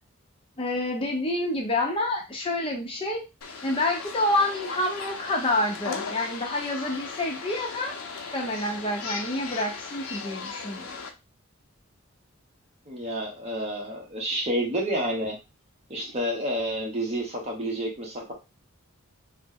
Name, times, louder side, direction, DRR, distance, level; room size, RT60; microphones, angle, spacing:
voice 1, 0.6-3.2 3.6-11.0, left 1 dB, 25° left, 1 dB, 0.6 m, -28 dB
sound 1, 3.4-11.1, left 4 dB, 85° left, 0.6 m, -37 dB
voice 2, 12.9-15.4 15.9-18.3, right 1 dB, 30° right, -1 dB, 1.0 m, -29 dB
3.0 x 2.0 x 3.4 m, 0.27 s
head